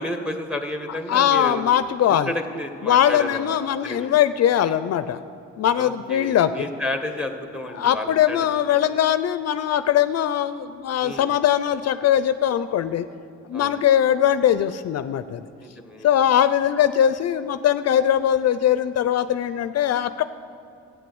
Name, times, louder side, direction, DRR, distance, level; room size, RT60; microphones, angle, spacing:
voice 1, 0.0-1.6 2.1-3.6 3.8-4.1 5.8-8.4 8.7-8.8 11.0-11.3 13.5-13.8 15.6-16.1, left 1 dB, 5° right, 6 dB, 1.4 m, -31 dB
voice 2, 1.1-2.3 2.8-5.2 5.6-6.7 7.7-13.1 13.5-15.5 16.0-20.2, left 10 dB, 60° left, 12 dB, 0.5 m, -21 dB
13.5 x 9.3 x 7.8 m, 2.5 s
cardioid pair, 90°, 30 cm